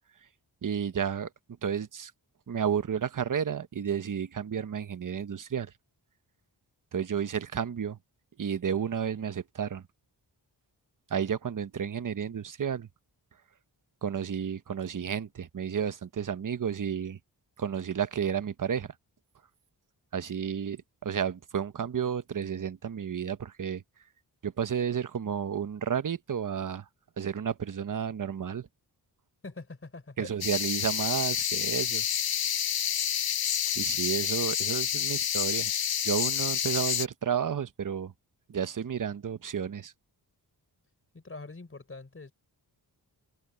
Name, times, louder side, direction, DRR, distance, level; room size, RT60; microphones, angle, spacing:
voice 1, 0.6-1.3 1.6-2.1 2.5-5.7 6.9-8.0 8.4-9.8 11.1-12.9 14.0-17.2 17.6-18.9 20.1-23.8 24.4-26.8 27.2-28.7 30.2-32.0 33.7-35.7 36.0-38.1 38.5-39.9, right 8 dB, 50° right, 1.0 m, -31 dB
voice 2, 29.4-30.3 41.1-42.3, left 3 dB, 30° left, 3.9 m, -44 dB
sound 1, 30.4-37.1, left 9 dB, 60° left, 0.8 m, -29 dB
wide cardioid pair, 95°, 42 cm